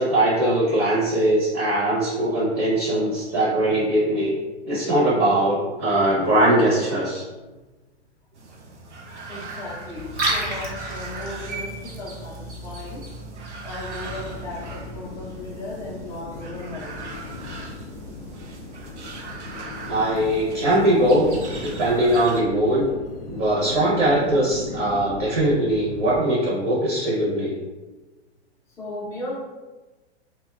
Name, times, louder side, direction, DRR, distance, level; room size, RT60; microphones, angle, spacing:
voice 1, 0.0-4.3 4.6-7.2 19.8-21.3 21.6-22.8 23.3-27.6, right 1 dB, 30° right, -6 dB, 0.7 m, -21 dB
sound 1, 8.3-22.4, right 3 dB, 85° right, 0.6 m, -40 dB
voice 2, 9.3-13.1 13.6-17.2 28.8-29.3, left 2 dB, 10° left, -6 dB, 0.4 m, -36 dB
Liquid, 10.0-15.0, right 2 dB, 65° right, 1.1 m, -32 dB
sound 2, 14.0-26.2, left 3 dB, 55° left, 0.5 m, -38 dB
2.7 x 2.2 x 2.3 m, 1.2 s
hypercardioid pair, 120°, 34 cm